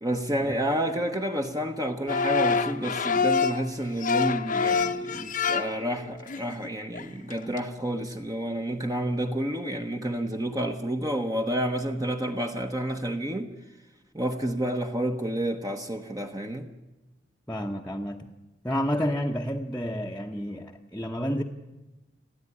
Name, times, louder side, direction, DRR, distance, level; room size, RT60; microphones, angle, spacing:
voice 1, 0.0-13.5 14.1-16.7, right 1 dB, 20° right, 1.1 m, -30 dB
sound 1, 2.1-3.6 4.0-5.9 6.3-6.7 6.9-7.0 7.3-7.6, left 5 dB, 45° left, 1.0 m, -26 dB
voice 2, 17.5-18.3 18.6-21.4, equal, 5° left, 1.0 m, -30 dB
30.0 x 11.0 x 9.7 m
head